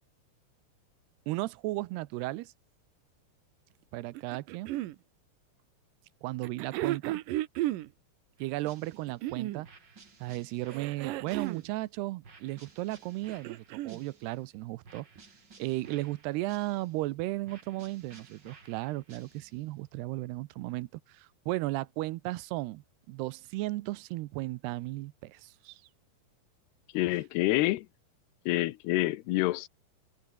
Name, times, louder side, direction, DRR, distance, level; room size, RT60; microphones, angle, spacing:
voice 1, 1.3-2.5 3.9-4.7 6.2-7.2 8.4-9.7 10.2-15.1 15.6-25.8, right 19 dB, 90° right, 2.8 m, -35 dB
sound 1, 4.2-5.0 6.4-7.9 8.9-9.7 10.7-11.7 13.1-14.0 15.2-15.3, right 16 dB, 75° right, 2.1 m, -34 dB
sound 2, 8.4-9.2 9.6-11.8 12.2-14.5 14.8-17.1 17.4-19.7, right 4 dB, 30° right, 3.5 m, -56 dB
voice 2, 26.9-27.9 28.5-29.7, left 17 dB, 80° left, 2.8 m, -27 dB
omnidirectional pair, 4.8 m